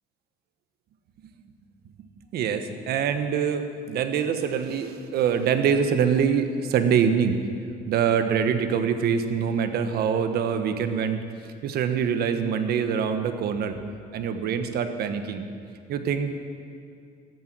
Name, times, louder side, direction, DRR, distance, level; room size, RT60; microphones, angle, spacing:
voice 1, 2.3-7.4 7.9-11.2 11.6-13.8 14.1-15.4 15.9-16.3, right 7 dB, 70° right, 8 dB, 1.3 m, -24 dB
14.0 x 14.0 x 6.2 m, 2.4 s
cardioid pair, 110°, 17 cm